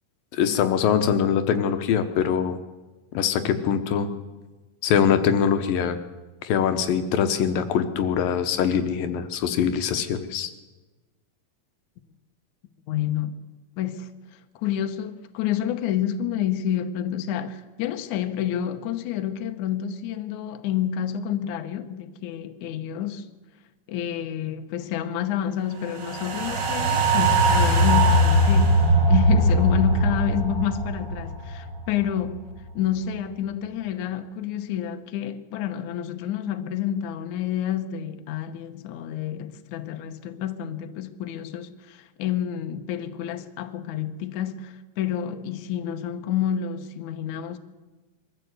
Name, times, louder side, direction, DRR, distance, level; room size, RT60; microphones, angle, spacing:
voice 1, 0.3-2.6 3.1-4.1 4.8-6.0 6.4-10.5, left 8 dB, 85° left, 2.8 m, -23 dB
voice 2, 12.9-13.4 13.8-14.1 14.6-23.3 23.9-47.6, left 10 dB, 65° left, 2.2 m, -29 dB
sound 1, 26.0-32.4 32.7-32.8, right 1 dB, 40° right, 2.0 m, -20 dB
22.5 x 14.0 x 8.1 m
omnidirectional pair, 4.1 m